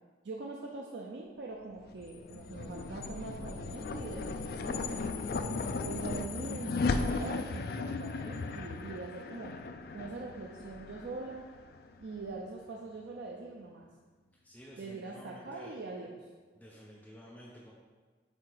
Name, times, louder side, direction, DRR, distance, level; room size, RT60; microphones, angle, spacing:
voice 1, 0.2-5.4 5.8-9.5 9.9-11.5 12.0-13.9 14.8-16.2, right 3 dB, 70° right, -1 dB, 0.5 m, -43 dB
sound 1, 1.8-12.4, left 3 dB, 55° left, 0.3 m, -36 dB
voice 2, 14.4-15.8 16.6-17.7, equal, 10° left, -4 dB, 0.6 m, -51 dB
7.7 x 2.8 x 4.6 m, 1.4 s
head